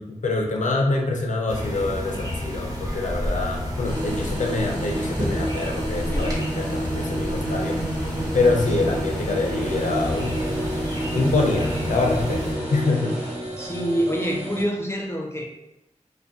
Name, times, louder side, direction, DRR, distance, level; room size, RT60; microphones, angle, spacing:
voice 1, 0.0-7.8 8.3-10.4 11.1-13.2, left 3 dB, 75° left, 1 dB, 0.4 m, -25 dB
sound 1, 1.5-12.6, equal, 30° right, 0.6 m, -30 dB
sound 2, 3.8-13.3, right 1 dB, 75° right, 1.0 m, -30 dB
sound 3, 9.6-14.6, equal, 60° right, 0.8 m, -34 dB
voice 2, 13.6-15.4, equal, 20° left, -1 dB, 0.4 m, -26 dB
2.4 x 2.1 x 2.4 m, 0.91 s
cardioid pair, 45°, 13 cm